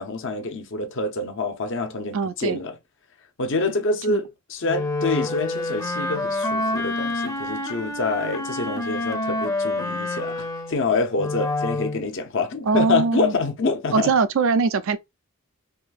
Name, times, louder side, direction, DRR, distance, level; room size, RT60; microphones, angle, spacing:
voice 1, 0.0-2.8 3.4-14.1, left 3 dB, 60° left, 0.8 m, -26 dB
voice 2, 2.1-2.6 4.1-4.2 12.7-13.3 13.9-15.0, right 4 dB, 65° right, 0.4 m, -21 dB
Wind instrument woodwind instrument, 4.7-12.0, left 2 dB, 15° left, 0.6 m, -27 dB
3.6 x 2.6 x 2.4 m
head